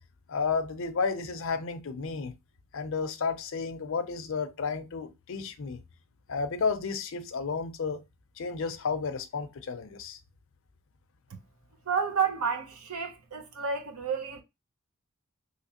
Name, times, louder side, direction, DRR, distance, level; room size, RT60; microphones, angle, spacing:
voice 1, 0.3-2.3 2.7-5.8 6.3-8.0 8.4-10.2, left 5 dB, 65° left, 0.5 m, -32 dB
voice 2, 11.9-14.4, right 6 dB, 80° right, 0.7 m, -30 dB
3.2 x 2.9 x 2.8 m
head